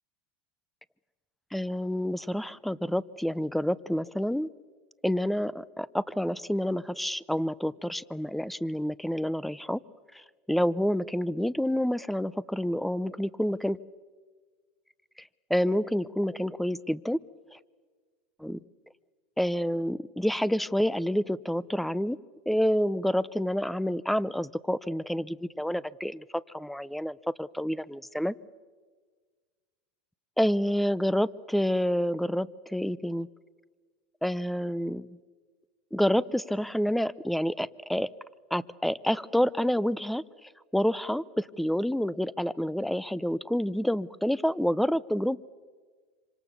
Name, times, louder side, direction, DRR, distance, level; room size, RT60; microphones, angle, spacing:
voice 1, 1.5-4.5 5.0-9.8 10.1-10.2 10.5-13.8 15.5-17.2 17.5-17.6 18.4-18.6 19.4-22.2 22.5-28.4 30.4-33.3 34.2-35.2 35.9-38.1 38.5-45.4, equal, ahead, 20 dB, 0.7 m, -28 dB
26.5 x 25.5 x 7.1 m, 1.5 s
hypercardioid pair, 95°, 5 cm